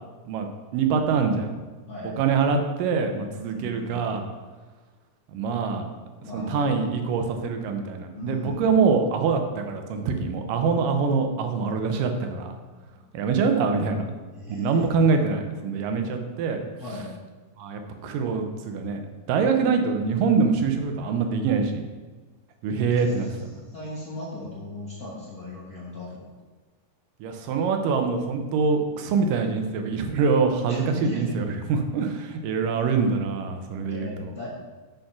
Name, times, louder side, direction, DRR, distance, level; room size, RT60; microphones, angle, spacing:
voice 1, 0.3-1.5 2.2-4.2 5.3-5.9 6.3-12.5 13.1-14.1 14.5-16.6 17.6-19.0 19.3-21.8 22.6-23.3 27.2-34.3, right 5 dB, 75° right, 5 dB, 2.4 m, -24 dB
voice 2, 1.9-2.2 3.3-4.1 6.2-6.8 8.1-8.8 12.9-13.0 14.3-14.9 16.8-17.1 22.9-23.3 23.7-26.3 30.7-31.4 33.9-34.5, left 2 dB, 70° left, -7 dB, 0.8 m, -37 dB
7.9 x 5.1 x 5.9 m, 1.3 s
omnidirectional pair, 4.1 m